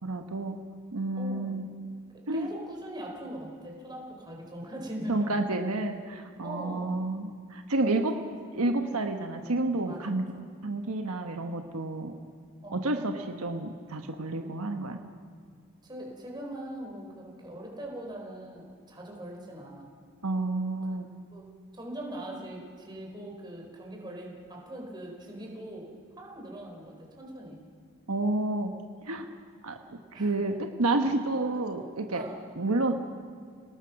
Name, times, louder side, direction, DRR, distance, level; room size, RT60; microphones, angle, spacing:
voice 1, 0.0-0.6 0.9-1.6 2.3-2.5 5.1-8.1 8.5-10.2 10.6-12.1 12.7-15.0 20.2-21.1 28.1-28.7 29.0-29.3 29.6-29.8 30.1-32.2 32.6-33.0, right 2 dB, 80° right, 5 dB, 1.3 m, -30 dB
voice 2, 1.2-1.8 2.3-5.4 6.4-7.0 7.8-8.3 8.6-8.7 9.8-10.4 12.6-12.8 15.8-19.9 21.3-21.5 21.7-25.9 26.2-27.6 30.1-30.5 32.1-32.4, right 1 dB, 20° right, -1 dB, 4.3 m, -41 dB
29.5 x 18.5 x 6.0 m, 2.3 s
head